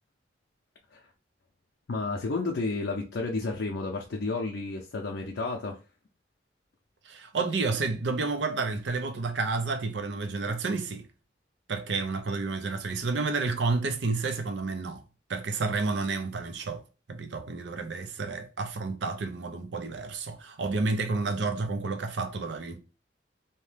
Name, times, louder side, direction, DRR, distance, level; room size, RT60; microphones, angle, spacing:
voice 1, 1.9-5.8, left 3 dB, 80° left, 0.5 m, -31 dB
voice 2, 7.0-11.0 11.7-15.0 15.3-16.8 17.1-22.8, right 3 dB, 85° right, 0.5 m, -30 dB
2.8 x 2.1 x 3.2 m
head